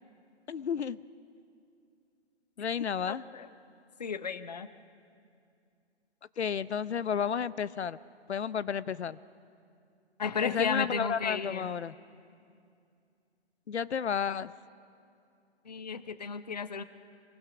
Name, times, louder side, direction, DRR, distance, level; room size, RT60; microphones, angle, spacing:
voice 1, 0.5-1.0 2.6-3.2 6.4-8.0 8.3-9.2 10.4-11.9 13.7-14.5, left 7 dB, 75° left, 17 dB, 0.7 m, -32 dB
voice 2, 3.1-3.5 4.0-4.7 10.2-11.7 15.7-16.8, left 6 dB, 40° left, 13 dB, 0.7 m, -33 dB
26.5 x 22.0 x 6.0 m, 2.4 s
hypercardioid pair, 175°, 34 cm